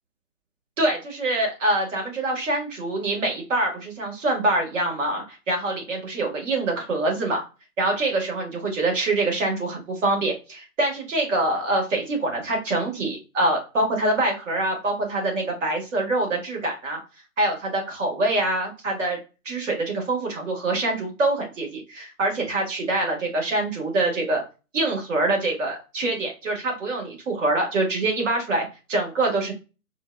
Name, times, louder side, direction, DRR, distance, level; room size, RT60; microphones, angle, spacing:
voice 1, 0.8-7.4 7.8-17.0 17.4-19.2 19.5-24.4 24.7-29.5, right 2 dB, 55° right, 0 dB, 1.8 m, -25 dB
4.3 x 2.3 x 2.3 m, 0.31 s
hypercardioid pair, 145°, 44 cm